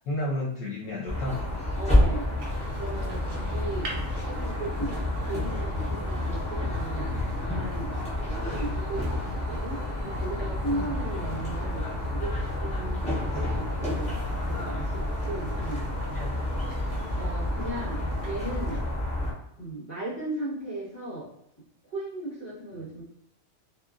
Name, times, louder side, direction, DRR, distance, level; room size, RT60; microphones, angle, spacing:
voice 1, 0.0-1.4 10.6-11.4 16.1-17.2 18.2-18.4 22.8-22.9, left 1 dB, 75° left, -6 dB, 1.0 m, -34 dB
sound 1, 1.1-19.3, left 1 dB, 10° left, 0.5 m, -29 dB
voice 2, 1.8-2.4 2.7-4.9 5.2-7.1 7.4-7.9 8.2-11.8 12.1-15.9 17.2-18.0 18.2-18.8 19.6-21.3 21.8-23.0, right 2 dB, 35° left, -9 dB, 1.6 m, -37 dB
sound 2, 2.4-18.8, right 2 dB, 65° right, 0.9 m, -44 dB
2.8 x 2.4 x 2.4 m, 0.74 s
omnidirectional pair, 1.4 m